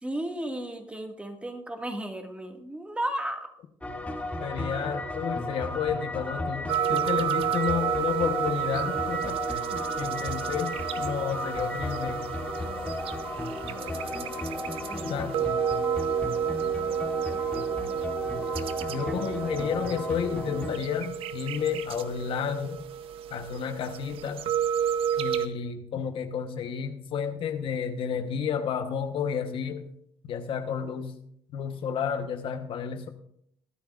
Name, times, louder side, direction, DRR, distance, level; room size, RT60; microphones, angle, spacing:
voice 1, 0.0-3.5 14.9-15.5 17.3-17.7 19.1-19.5, right 1 dB, 10° right, 1.9 m, -35 dB
sound 1, 3.8-20.7, left 1 dB, 15° left, 2.3 m, -34 dB
voice 2, 4.4-12.3 15.0-15.4 18.9-22.8 23.3-24.5 25.2-29.9 30.2-31.2 31.5-33.1, left 7 dB, 65° left, 1.1 m, -31 dB
sound 2, 6.7-25.5, right 9 dB, 70° right, 0.8 m, -31 dB
20.5 x 10.0 x 2.5 m
supercardioid pair, 75°, 10 cm